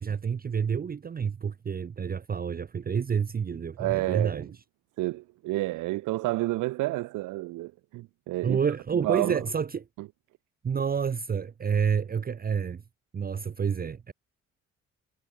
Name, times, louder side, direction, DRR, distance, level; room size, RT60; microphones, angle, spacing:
voice 1, 0.0-4.5 8.4-9.8 10.6-12.8 13.1-14.1, right 6 dB, 30° right, 0.7 m, -29 dB
voice 2, 3.8-4.5 5.0-8.6 9.0-9.4 10.0-10.1, right 19 dB, 90° right, 0.7 m, -30 dB
cardioid pair, 90°, 30 cm